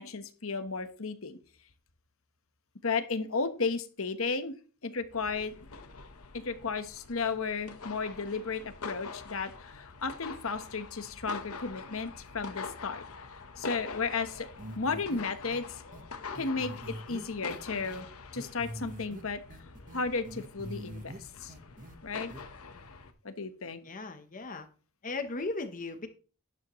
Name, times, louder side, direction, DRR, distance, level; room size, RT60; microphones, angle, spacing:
voice 1, 0.0-1.4 2.8-4.5 4.8-5.5 6.3-13.0 13.6-14.5 14.8-15.8 16.3-18.1 18.3-19.4 19.9-21.5 22.0-22.4 23.2-23.8, left 4 dB, 70° left, 1.2 m, -34 dB
sound 1, 5.1-23.1, left 4 dB, 90° left, 1.2 m, -45 dB
sound 2, 14.6-15.2 15.5-15.6 15.9-16.0 16.4-18.0 18.3-19.2 19.5-21.2 21.5-22.0 22.3-22.4, right 1 dB, 40° right, 1.3 m, -44 dB
voice 2, 23.8-24.7 25.0-26.1, left 3 dB, 40° left, 1.0 m, -37 dB
12.0 x 9.5 x 3.1 m
head